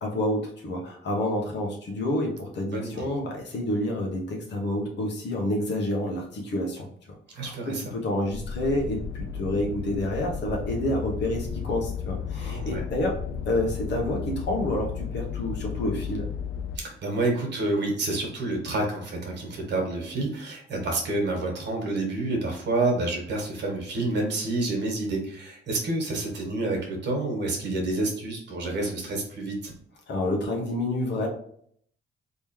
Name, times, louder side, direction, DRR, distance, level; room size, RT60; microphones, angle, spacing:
voice 1, 0.0-13.1 13.5-16.3 30.1-31.3, left 1 dB, 60° left, -1 dB, 1.1 m, -29 dB
voice 2, 7.3-7.8 12.4-12.8 16.7-29.7, right 2 dB, 60° right, 1 dB, 1.4 m, -28 dB
sound 1, 8.2-16.8, left 7 dB, 80° left, 0.5 m, -34 dB
3.7 x 3.0 x 3.1 m, 0.63 s
cardioid pair, 90°, 20 cm